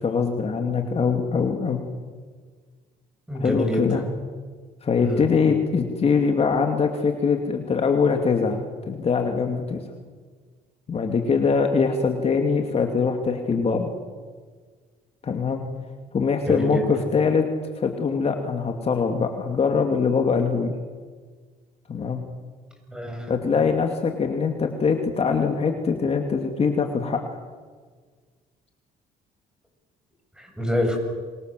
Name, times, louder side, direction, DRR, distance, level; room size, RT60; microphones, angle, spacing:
voice 1, 0.0-1.8 3.4-4.0 4.8-8.6 8.9-9.8 10.9-13.9 15.2-15.6 16.1-17.4 17.8-20.7 21.9-22.2 23.3-27.2, left 5 dB, 35° left, 4 dB, 2.7 m, -23 dB
voice 2, 3.3-3.9 5.0-5.2 16.5-16.9 22.9-23.3 30.4-31.0, left 1 dB, 5° right, 3 dB, 8.0 m, -26 dB
27.0 x 25.5 x 7.8 m, 1.5 s
cardioid pair, 110°, 17 cm